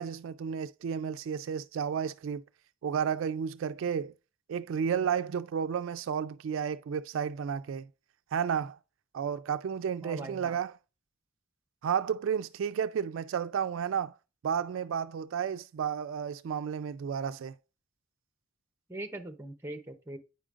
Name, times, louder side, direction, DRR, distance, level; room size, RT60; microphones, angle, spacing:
voice 1, 0.0-2.4 2.8-4.1 4.5-7.9 8.3-8.8 9.1-10.7 11.8-14.1 14.4-17.5, right 7 dB, 65° right, 0.3 m, -32 dB
voice 2, 10.0-10.6 18.9-20.2, right 2 dB, 10° right, 0.7 m, -41 dB
9.1 x 5.0 x 2.5 m
head